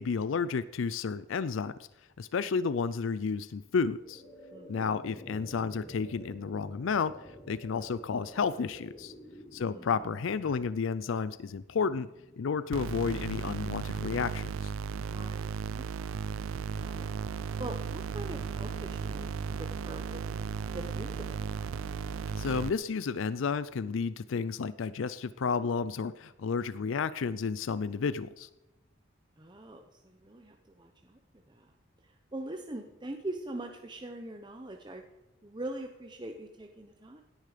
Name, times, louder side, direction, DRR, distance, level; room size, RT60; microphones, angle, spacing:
voice 1, 0.0-1.9 2.2-4.2 4.7-9.1 9.5-12.1 12.4-14.7 22.4-28.5, left 5 dB, 75° left, 16 dB, 0.4 m, -31 dB
sound 1, 3.6-14.8, equal, 30° left, 3.4 m, -51 dB
voice 2, 9.6-9.9 15.0-16.2 16.6-20.5 20.7-21.8 29.4-31.7 32.0-35.0 35.4-37.2, right 1 dB, 20° right, 4 dB, 0.8 m, -43 dB
sound 2, 12.7-22.7, right 6 dB, 85° right, 0.4 m, -36 dB
sound 3, 16.7-22.3, right 3 dB, 65° right, 5.5 m, -49 dB
17.0 x 10.0 x 5.0 m, 0.96 s
head